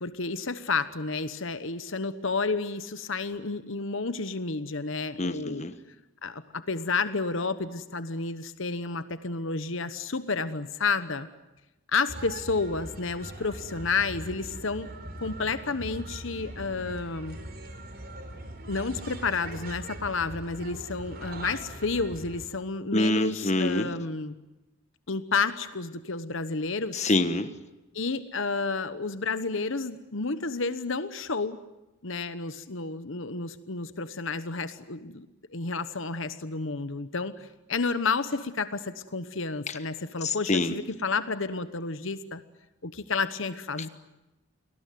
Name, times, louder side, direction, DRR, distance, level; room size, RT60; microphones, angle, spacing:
voice 1, 0.0-5.7 6.2-11.3 11.9-14.9 15.2-17.4 18.7-24.3 25.1-27.1 27.9-31.6 32.0-42.4 42.8-43.9, left 4 dB, 60° left, 12 dB, 1.1 m, -31 dB
voice 2, 5.2-5.7 22.9-23.9 26.9-27.5 40.2-40.8, left 2 dB, 30° left, 10 dB, 1.4 m, -25 dB
sound 1, 12.1-22.4, right 1 dB, 45° right, 4.0 m, -41 dB
29.5 x 20.0 x 9.4 m, 1.0 s
head